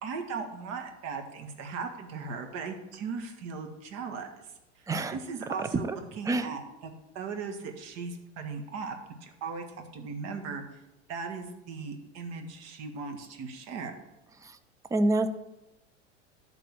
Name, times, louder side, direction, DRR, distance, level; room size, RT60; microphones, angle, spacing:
voice 1, 0.0-4.3 5.1-9.0 9.2-10.6 11.1-13.9, right 5 dB, 45° right, 5 dB, 1.7 m, -38 dB
voice 2, 4.9-5.2 5.8-6.0 6.3-6.5 14.9-15.3, right 2 dB, 10° right, 11 dB, 0.5 m, -26 dB
11.5 x 4.0 x 7.7 m, 0.94 s
figure-of-eight pair, 90°, 36 cm